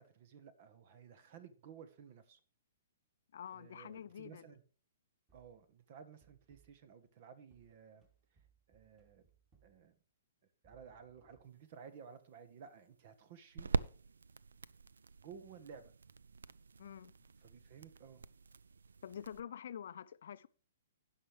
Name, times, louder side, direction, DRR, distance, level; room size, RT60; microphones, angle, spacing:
voice 1, 0.0-2.4 3.5-4.6 5.3-8.1 8.3-8.4 8.7-9.2 9.6-10.0 10.6-13.7 15.2-15.9 17.4-18.2, right 7 dB, 45° right, 1.1 m, -55 dB
voice 2, 3.3-4.5 16.8-17.1 19.0-20.5, left 9 dB, 60° left, 0.5 m, -47 dB
sound 1, 5.3-5.7 6.2-6.9 7.5-9.9 10.6-11.4, right 7 dB, 20° right, 2.6 m, -70 dB
sound 2, 11.5-19.4, right 4 dB, 75° right, 0.4 m, -43 dB
17.0 x 5.8 x 3.3 m
figure-of-eight pair, 120°, 0 cm